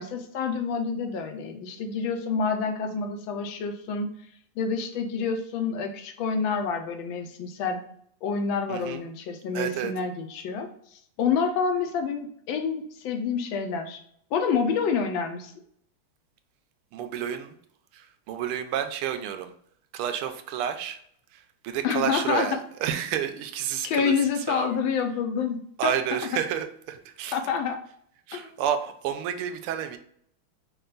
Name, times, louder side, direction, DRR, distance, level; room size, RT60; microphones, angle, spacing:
voice 1, 0.0-4.1 4.6-7.8 8.2-10.7 11.2-14.0 14.3-15.5 21.8-22.6 23.8-25.9 27.3-27.8 28.3-28.5, left 6 dB, 75° left, 6 dB, 1.3 m, -28 dB
voice 2, 8.7-9.0 9.5-9.9 16.9-17.5 17.9-19.5 19.9-21.0 21.3-24.2 24.5-24.8 25.8-27.4 28.3-30.0, right 9 dB, 85° right, 8 dB, 1.5 m, -30 dB
5.5 x 2.4 x 3.8 m, 0.64 s
omnidirectional pair, 2.3 m